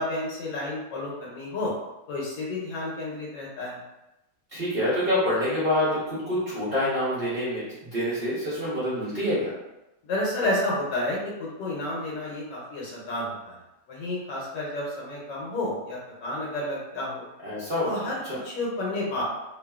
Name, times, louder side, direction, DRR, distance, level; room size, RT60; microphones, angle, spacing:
voice 1, 0.0-1.7 2.1-3.8 10.0-13.6 13.9-17.3 17.8-19.2, left 1 dB, 80° left, -4 dB, 1.3 m, -31 dB
voice 2, 4.5-7.6 7.9-9.5 17.4-18.4, left 1 dB, 50° right, -9 dB, 0.7 m, -26 dB
2.7 x 2.6 x 2.2 m, 0.96 s
omnidirectional pair, 1.9 m